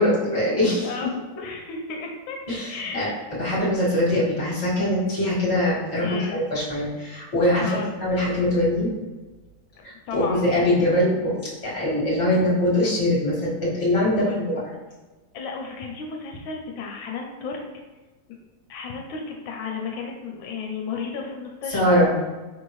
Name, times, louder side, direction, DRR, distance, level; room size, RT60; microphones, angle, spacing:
voice 1, 0.0-0.9 2.5-3.1 3.4-8.9 9.8-14.6 21.7-22.1, left 1 dB, 25° left, -7 dB, 1.3 m, -22 dB
voice 2, 0.8-2.4 2.7-3.2 6.0-6.4 7.6-7.9 9.8-10.5 14.2-14.4 15.3-17.6 18.7-22.1, left 4 dB, 85° left, 1 dB, 1.4 m, -33 dB
5.1 x 2.7 x 3.0 m, 1.2 s
omnidirectional pair, 2.1 m